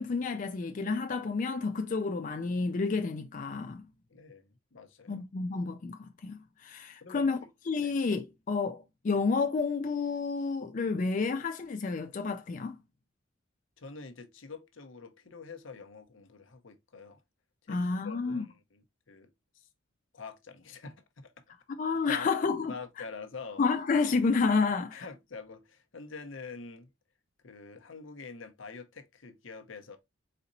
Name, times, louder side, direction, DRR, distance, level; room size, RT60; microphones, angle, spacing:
voice 1, 0.0-3.8 5.1-7.4 7.7-12.8 17.7-18.5 21.8-22.7 23.6-25.1, left 4 dB, 40° left, 0.4 m, -30 dB
voice 2, 4.1-5.2 7.0-7.5 7.8-7.9 13.8-17.2 17.6-19.7 20.1-21.3 22.1-22.3 22.7-23.6 24.9-26.9 27.4-30.0, left 4 dB, 75° left, 0.8 m, -46 dB
4.3 x 4.1 x 2.6 m
head